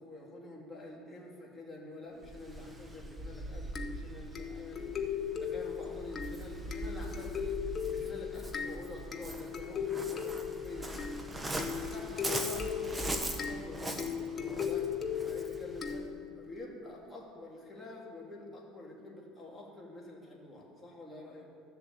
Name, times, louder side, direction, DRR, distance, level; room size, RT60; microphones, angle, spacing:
voice 1, 0.0-7.5 7.8-11.0 11.5-14.9 15.2-21.5, left 1 dB, 10° left, -4 dB, 3.0 m, -47 dB
Waves surf, 2.2-16.1, right 1 dB, 15° right, 1.1 m, -41 dB
sound 1, 3.8-16.5, left 8 dB, 30° left, 0.9 m, -38 dB
13.0 x 7.0 x 8.0 m, 2.5 s
supercardioid pair, 120°, 0 cm